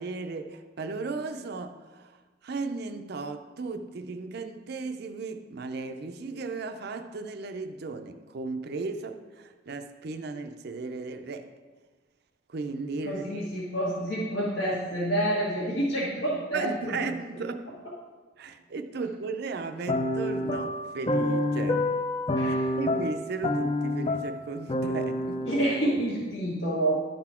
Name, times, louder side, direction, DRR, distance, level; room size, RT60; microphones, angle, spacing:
voice 1, 0.0-2.1 2.4-11.5 12.5-13.4 16.5-17.7 18.4-21.9 22.4-25.5, right 4 dB, 55° right, 8 dB, 0.5 m, -35 dB
voice 2, 13.0-17.1 22.4-22.6 25.5-27.0, right 1 dB, 70° left, -8 dB, 1.5 m, -28 dB
sound 1, 19.9-26.2, left 1 dB, 25° left, 0.4 m, -28 dB
11.5 x 4.1 x 4.3 m, 1.4 s
head